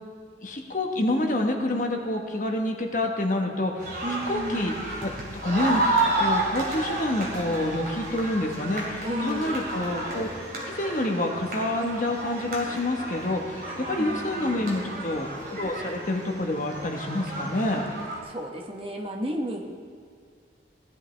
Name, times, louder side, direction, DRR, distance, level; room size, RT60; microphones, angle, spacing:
voice 1, 0.4-3.9 4.3-4.7 5.0-5.1 5.4-5.8 6.2-10.3 10.7-17.8, left 1 dB, 45° left, 3 dB, 1.2 m, -27 dB
sound 1, 3.8-18.2, right 2 dB, 50° right, 2.6 m, -31 dB
voice 2, 4.0-4.8 9.0-9.7 13.6-14.9 18.3-19.7, equal, 30° right, 1 dB, 1.1 m, -33 dB
17.0 x 11.0 x 3.3 m, 2.2 s
head